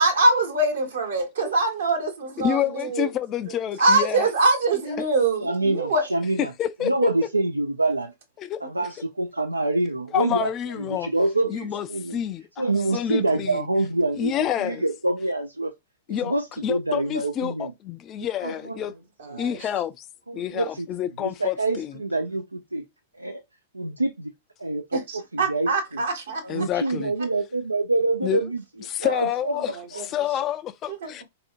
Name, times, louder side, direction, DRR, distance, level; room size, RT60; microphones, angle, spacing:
voice 1, 0.0-3.1 3.8-6.0 19.2-19.6 24.9-26.6 30.9-31.2, right 2 dB, 65° right, 1.1 m, -23 dB
voice 2, 2.4-4.3 6.6-6.9 8.4-8.6 10.1-11.1 11.5-12.6 12.9-13.7 14.2-14.8 16.1-16.3 16.6-18.9 19.4-20.0 20.3-21.9 26.5-27.1 28.2-28.4 28.9-29.7 30.1-31.2, left 10 dB, 30° left, 0.3 m, -28 dB
voice 3, 5.4-6.5 6.8-8.1 8.6-10.5 10.8-12.2 12.6-15.7 16.2-17.7 18.4-18.8 19.3-19.4 20.3-20.9 21.2-22.9 23.2-23.4 23.7-24.3 24.6-26.0 26.4-28.6 29.0-29.6 29.9-30.0, right 2 dB, 85° right, 0.3 m, -26 dB
4.1 x 2.6 x 2.4 m
figure-of-eight pair, 100°, 0 cm